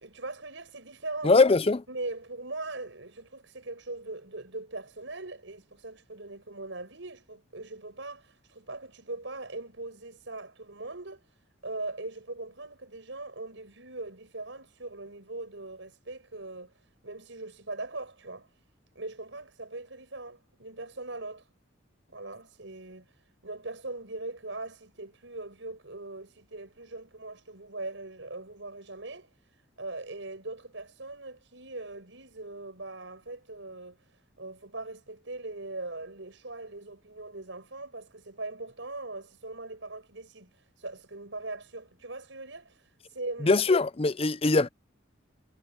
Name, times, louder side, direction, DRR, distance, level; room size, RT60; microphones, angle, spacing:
voice 1, 0.0-1.3 1.9-11.2 11.6-16.7 17.0-18.5 18.9-21.4 22.1-23.1 23.4-29.3 29.8-34.0 34.4-40.5 40.8-42.7 43.1-43.6, right 2 dB, 70° right, 6.1 m, -40 dB
voice 2, 1.2-1.8 43.4-44.7, left 3 dB, 30° left, 0.6 m, -22 dB
head